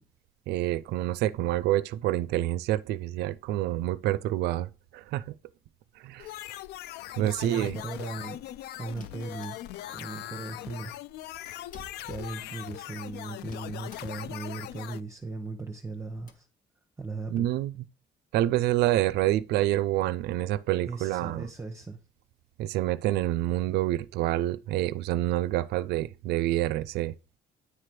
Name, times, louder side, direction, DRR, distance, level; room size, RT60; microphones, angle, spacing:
voice 1, 0.5-5.2 6.0-6.3 7.2-7.8 17.3-17.7 18.3-21.5 22.6-27.1, right 14 dB, 85° right, 0.4 m, -27 dB
sound 1, 6.2-15.0, left 14 dB, 85° left, 0.4 m, -40 dB
sound 2, 7.1-8.4 8.9-10.1 10.4-10.5 10.7-12.9 13.4-14.5 14.8-14.9 15.1-15.3 15.8-16.3, left 1 dB, 55° left, 1.4 m, -54 dB
voice 2, 7.2-8.5 8.7-9.6 9.9-10.9 11.4-11.5 12.0-16.5 17.0-17.5 20.8-22.0, right 3 dB, 15° right, 0.8 m, -38 dB
9.7 x 3.3 x 5.8 m
cardioid pair, 125°, 16 cm